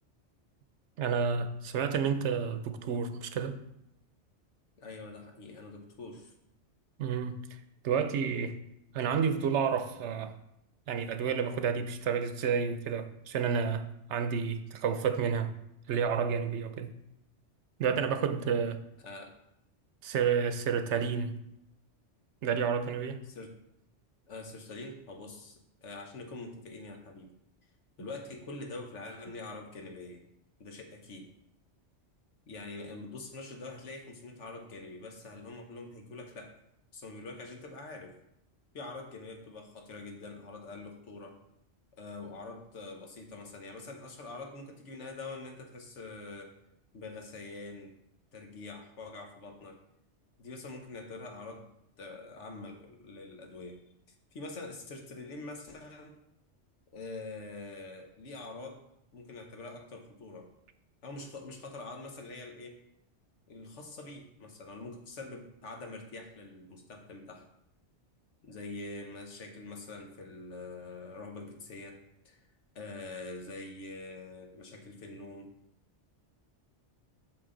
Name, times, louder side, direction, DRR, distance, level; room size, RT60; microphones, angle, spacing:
voice 1, 1.0-3.6 7.0-7.3 7.8-8.5 8.9-10.3 10.9-15.5 15.9-16.9 17.8-18.8 20.0-21.3 22.4-23.2, right 6 dB, 75° right, 10 dB, 0.9 m, -30 dB
voice 2, 4.8-6.3 19.0-19.3 23.2-23.6 24.3-27.3 28.0-30.2 30.6-31.3 32.5-36.6 36.9-38.2 38.7-41.4 42.0-46.5 46.9-48.0 48.3-49.8 50.4-51.7 52.0-53.8 54.3-56.2 56.9-58.8 59.1-60.5 61.0-62.8 63.5-67.5 68.4-72.0 72.2-72.5 72.7-75.5, left 3 dB, 75° left, 3 dB, 1.4 m, -44 dB
7.5 x 6.2 x 3.9 m, 0.81 s
omnidirectional pair, 1.2 m